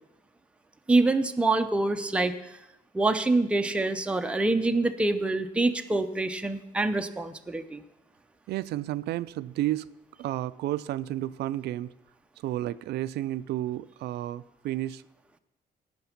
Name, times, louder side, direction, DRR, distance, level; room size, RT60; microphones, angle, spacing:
voice 1, 0.9-2.3 2.9-7.8, right 2 dB, 5° right, 7 dB, 0.5 m, -25 dB
voice 2, 8.5-9.9 10.2-11.9 12.4-15.0, right 14 dB, 85° right, 15 dB, 0.4 m, -31 dB
16.5 x 5.9 x 5.8 m, 0.92 s
cardioid pair, 165°, 17 cm